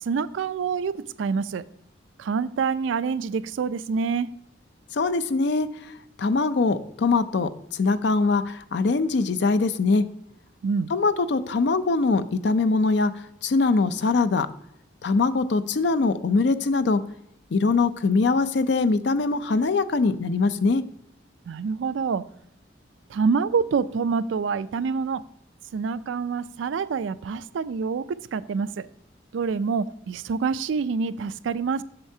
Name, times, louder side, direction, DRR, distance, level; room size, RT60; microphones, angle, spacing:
voice 1, 0.0-1.6 2.2-4.3 10.6-10.9 21.5-22.2 23.1-25.2 25.7-28.1 28.3-28.9 29.3-31.8, right 5 dB, 80° right, 15 dB, 0.4 m, -26 dB
voice 2, 4.9-5.7 6.2-10.0 10.9-13.1 13.4-14.5 15.0-17.0 17.5-20.8, left 3 dB, 65° left, 12 dB, 0.5 m, -22 dB
7.9 x 6.6 x 2.7 m, 0.76 s
head